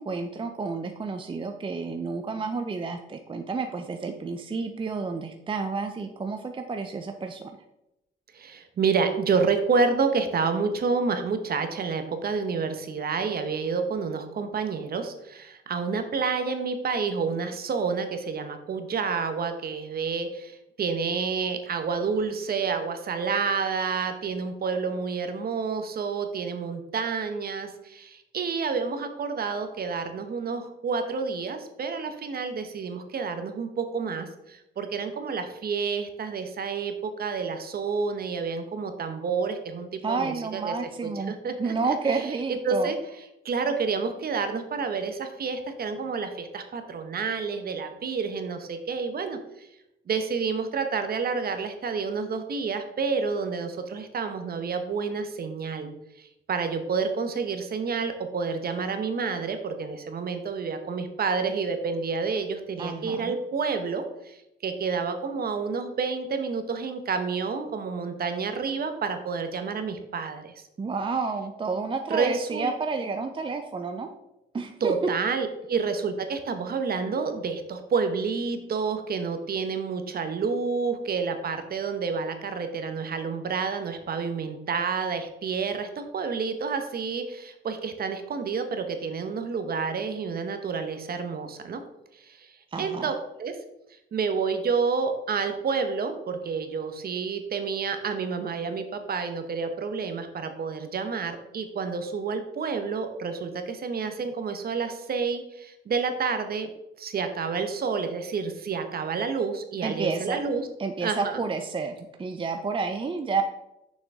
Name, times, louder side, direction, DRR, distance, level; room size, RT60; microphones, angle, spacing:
voice 1, 0.0-7.4 40.0-41.3 41.6-42.9 62.8-63.4 70.8-74.1 74.5-74.9 92.7-93.1 109.8-110.4 110.8-113.4, right 4 dB, 25° right, 6 dB, 0.6 m, -30 dB
voice 2, 8.3-40.7 41.0-41.7 42.5-43.0 43.4-49.7 50.1-70.5 72.1-72.7 74.8-91.8 92.2-93.6 94.1-106.7 107.0-110.7 111.0-111.4, right 5 dB, 50° right, 8 dB, 1.0 m, -29 dB
6.5 x 6.1 x 3.6 m, 0.87 s
cardioid pair, 90°, 20 cm